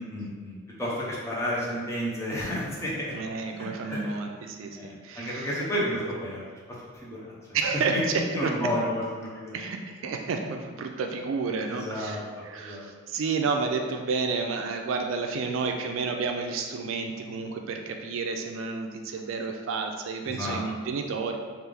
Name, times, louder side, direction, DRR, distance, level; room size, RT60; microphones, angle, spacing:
voice 1, 0.1-4.2 4.7-6.4 6.9-7.3 7.7-8.0 8.3-9.6 11.6-12.9 20.2-20.6, equal, 15° left, -6 dB, 0.8 m, -32 dB
voice 2, 3.1-5.5 7.5-8.5 9.5-12.2 12.4-21.3, right 4 dB, 70° right, 4 dB, 0.3 m, -30 dB
3.3 x 2.5 x 3.4 m, 1.5 s
head